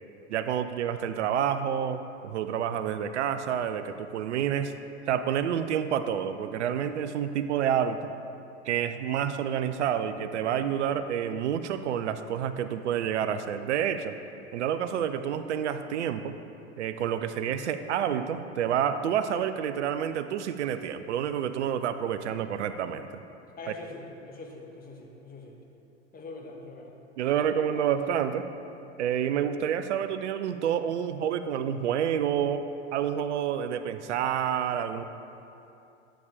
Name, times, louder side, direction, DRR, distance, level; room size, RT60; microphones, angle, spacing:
voice 1, 0.3-4.7 5.1-8.0 8.7-14.2 14.5-16.4 16.8-23.2 27.2-28.5 29.0-32.6 32.9-35.0, right 9 dB, 75° right, 10 dB, 0.6 m, -28 dB
voice 2, 23.6-25.6 26.1-27.0 27.4-28.0, left 2 dB, 25° left, 1 dB, 1.5 m, -43 dB
11.5 x 8.7 x 3.4 m, 2.7 s
figure-of-eight pair, 80°, 35 cm